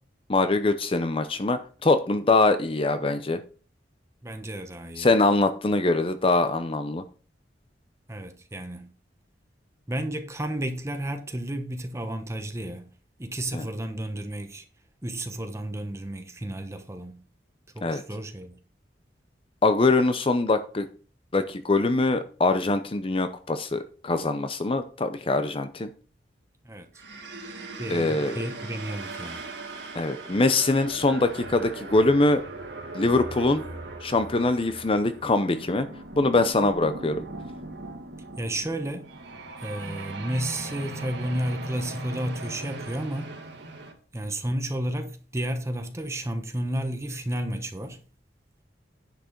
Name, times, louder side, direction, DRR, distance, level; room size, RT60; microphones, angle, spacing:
voice 1, 0.3-3.4 5.0-7.0 13.5-13.6 17.8-18.0 19.6-20.9 21.3-25.9 27.9-28.4 29.9-32.4 32.9-33.6 34.0-35.9 36.2-37.2, left 2 dB, 30° left, 0.6 m, -23 dB
voice 2, 4.2-5.1 8.1-8.9 9.9-12.9 13.2-14.6 15.0-17.2 17.7-18.6 26.6-26.9 27.8-29.4 38.4-39.1 39.6-43.3 44.1-48.0, right 1 dB, 15° right, 1.0 m, -32 dB
sound 1, 26.9-43.9, right 2 dB, 75° right, 2.0 m, -39 dB
10.0 x 5.9 x 4.5 m
head